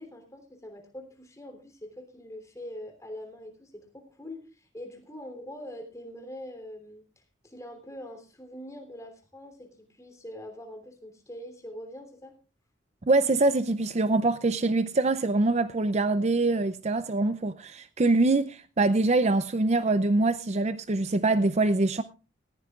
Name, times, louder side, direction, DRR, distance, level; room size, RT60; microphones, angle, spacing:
voice 1, 0.0-7.0 7.4-12.3, left 1 dB, 15° left, 3.2 m, -43 dB
voice 2, 13.1-22.0, right 2 dB, 35° right, 0.5 m, -24 dB
19.5 x 15.5 x 2.4 m
head